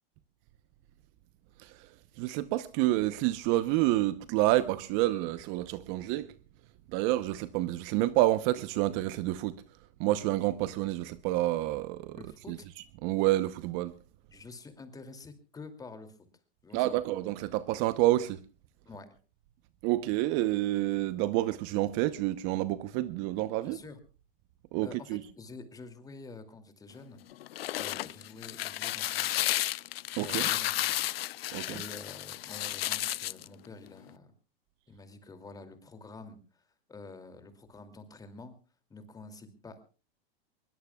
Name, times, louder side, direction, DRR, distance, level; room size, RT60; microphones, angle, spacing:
voice 1, 2.2-6.3 6.9-9.5 10.0-12.2 12.5-12.6 13.0-13.9 16.7-18.4 19.8-23.8 24.7-25.2 30.2-30.4 31.5-31.7, right 16 dB, 40° right, 0.9 m, -28 dB
voice 2, 12.1-12.7 14.3-16.2 16.6-17.1 18.8-19.1 23.6-24.0 24.8-27.2 27.8-29.4 30.2-34.3 34.9-38.6 38.9-39.8, left 3 dB, 10° left, 2.6 m, -48 dB
sound 1, 27.3-33.5, left 14 dB, 85° left, 0.7 m, -32 dB
23.5 x 21.5 x 2.3 m
supercardioid pair, 140°, 29 cm